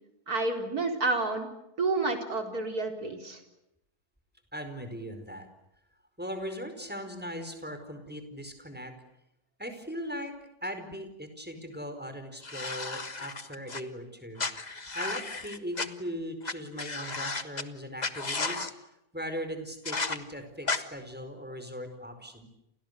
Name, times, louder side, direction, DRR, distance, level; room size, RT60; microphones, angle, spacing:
voice 1, 0.3-1.5 1.8-3.4, right 3 dB, 60° right, 4 dB, 4.6 m, -29 dB
voice 2, 4.5-5.5 6.2-8.9 9.6-10.3 10.6-18.7 19.1-22.5, equal, 5° right, 7 dB, 4.8 m, -39 dB
sound 1, 12.4-13.8 14.4-15.9 16.4-16.5 16.8-17.6 18.0-18.7 19.9-20.2 20.7-20.8, left 3 dB, 25° left, 1.5 m, -33 dB
30.0 x 29.5 x 6.8 m, 0.86 s
omnidirectional pair, 1.8 m